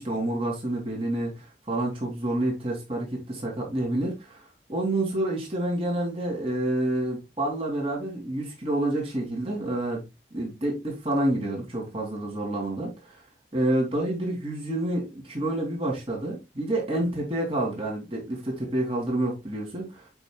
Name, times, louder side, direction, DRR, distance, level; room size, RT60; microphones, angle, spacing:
voice 1, 0.0-10.0 10.3-13.2 13.5-20.1, right 1 dB, 30° right, 2.9 m, -28 dB
7.8 x 5.4 x 2.4 m
head